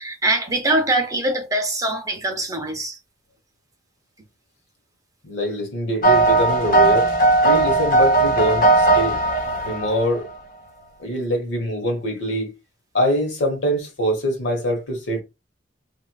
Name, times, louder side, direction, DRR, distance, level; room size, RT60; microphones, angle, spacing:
voice 1, 0.0-3.0, right 2 dB, 20° right, 0.6 m, -23 dB
voice 2, 5.2-7.1 7.4-9.2 9.6-10.3 11.0-12.5 12.9-15.2, equal, 85° left, 1.1 m, -24 dB
sound 1, 6.0-10.3, right 2 dB, 45° left, 0.8 m, -17 dB
3.0 x 2.4 x 2.2 m
head